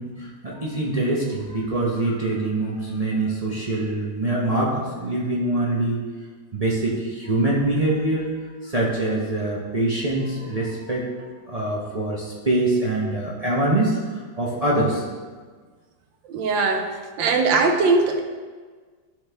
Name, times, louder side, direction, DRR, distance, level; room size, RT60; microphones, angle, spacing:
voice 1, 0.0-6.0 6.5-8.3 8.6-11.0 11.5-15.0, right 2 dB, 35° right, -5 dB, 0.6 m, -24 dB
voice 2, 16.3-16.9 17.2-18.2, right 3 dB, 90° right, 4 dB, 1.4 m, -20 dB
10.5 x 4.0 x 3.4 m, 1.5 s
omnidirectional pair, 2.0 m